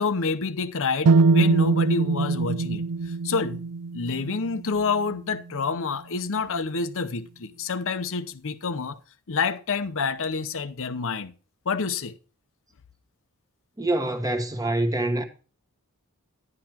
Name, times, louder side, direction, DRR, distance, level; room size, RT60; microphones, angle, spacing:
voice 1, 0.0-3.6 3.9-9.0 9.3-11.3 11.6-12.1, left 4 dB, 65° left, 0.8 m, -28 dB
sound 1, 1.1-5.0, right 3 dB, 80° right, 0.4 m, -22 dB
voice 2, 13.8-15.2, right 1 dB, 15° right, 1.2 m, -25 dB
11.0 x 10.5 x 2.9 m
head